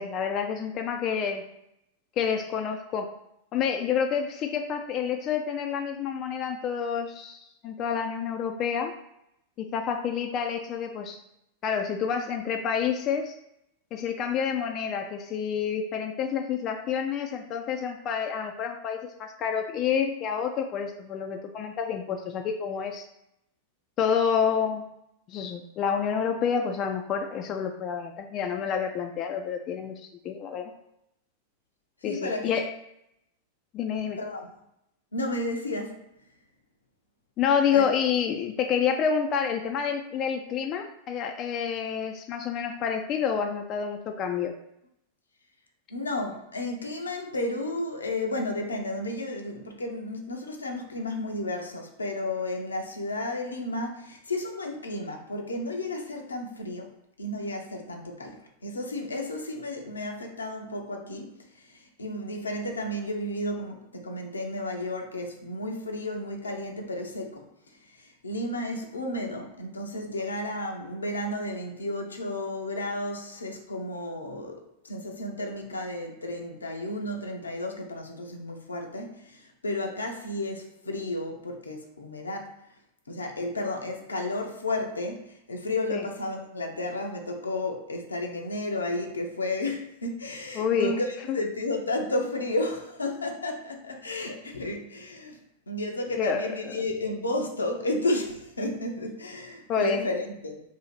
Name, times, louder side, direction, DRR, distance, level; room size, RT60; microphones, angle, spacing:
voice 1, 0.0-1.4 2.2-3.1 3.5-8.9 9.6-11.2 11.6-13.3 13.9-23.1 24.0-24.8 25.3-29.9 30.2-30.7 32.0-32.7 33.7-34.2 37.4-44.5 85.9-86.0 90.6-91.0 91.3-91.4 96.2-96.4 99.7-100.0, left 7 dB, 35° left, 4 dB, 0.3 m, -28 dB
voice 2, 32.0-32.6 34.2-34.6 35.1-36.0 37.7-37.9 45.9-56.9 57.2-67.5 67.9-82.5 83.1-95.4 95.7-100.6, left 1 dB, 80° left, 2 dB, 0.6 m, -32 dB
2.8 x 2.7 x 4.0 m, 0.79 s
figure-of-eight pair, 90°, 0 cm